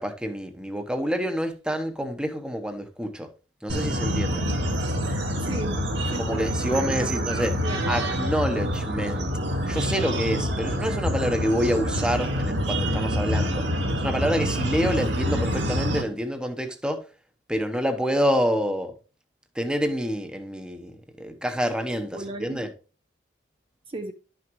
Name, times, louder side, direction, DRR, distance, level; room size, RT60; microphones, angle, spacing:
voice 1, 0.0-3.3 3.6-4.4 6.2-7.5 7.9-9.3 9.7-13.6 14.0-17.0 17.5-18.9 19.5-22.7, equal, 5° right, 1.0 m, -27 dB
sound 1, 3.7-16.0, equal, 75° right, 1.8 m, -26 dB
voice 2, 5.4-5.8 6.1-6.4 6.7-8.0 22.1-22.6 23.9-24.1, right 2 dB, 30° right, 0.7 m, -35 dB
11.5 x 6.1 x 3.1 m
head